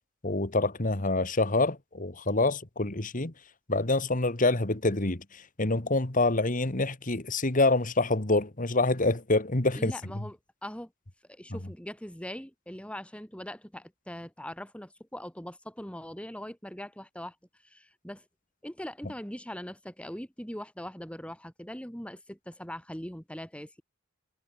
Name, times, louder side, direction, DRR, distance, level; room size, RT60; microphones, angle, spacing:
voice 1, 0.2-3.3 3.7-10.2 11.5-11.6 19.0-19.1, left 2 dB, 40° left, 1.9 m, -26 dB
voice 2, 9.7-10.9 11.3-17.4 17.6-18.2 18.6-23.8, equal, 5° left, 3.9 m, -41 dB
head